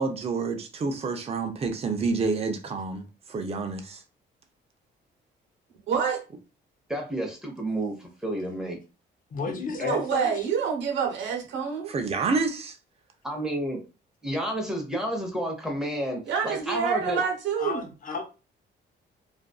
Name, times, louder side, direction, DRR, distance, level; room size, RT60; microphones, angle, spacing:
voice 1, 0.0-4.0 11.9-12.8, right 4 dB, 30° right, 0.5 m, -28 dB
voice 2, 5.9-6.2 9.9-11.9 16.3-17.8, right 7 dB, 70° right, 0.9 m, -27 dB
voice 3, 6.9-8.8 9.5-10.0 13.2-13.8 14.2-17.2, right 1 dB, 5° right, 0.8 m, -31 dB
voice 4, 9.3-10.5 17.6-18.2, left 5 dB, 45° left, 0.6 m, -32 dB
2.5 x 2.3 x 2.3 m
cardioid pair, 90°, 20 cm